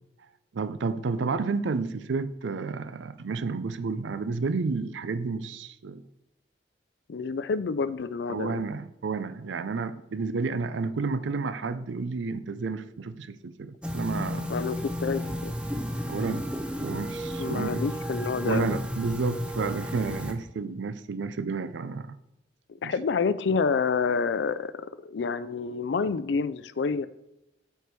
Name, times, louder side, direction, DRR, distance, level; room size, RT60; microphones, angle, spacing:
voice 1, 0.5-6.0 8.3-14.5 16.1-16.5 16.8-17.8 18.5-22.2 22.8-22.9, right 4 dB, 85° right, 0.5 m, -31 dB
voice 2, 7.1-8.6 14.5-15.5 17.4-18.8 22.8-27.1, left 5 dB, 70° left, 0.4 m, -28 dB
sound 1, 13.8-20.3, equal, 5° right, 0.6 m, -33 dB
8.1 x 4.5 x 4.6 m
head